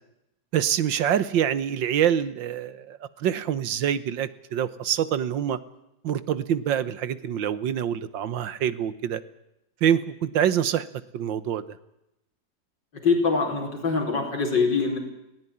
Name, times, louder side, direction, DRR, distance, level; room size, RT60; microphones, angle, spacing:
voice 1, 0.5-5.6 6.0-9.2 9.8-10.9 11.1-11.8, right 9 dB, 85° right, 15 dB, 1.8 m, -25 dB
voice 2, 13.0-15.0, left 4 dB, 70° left, 2 dB, 5.3 m, -23 dB
19.0 x 18.0 x 9.9 m, 0.87 s
omnidirectional pair, 2.0 m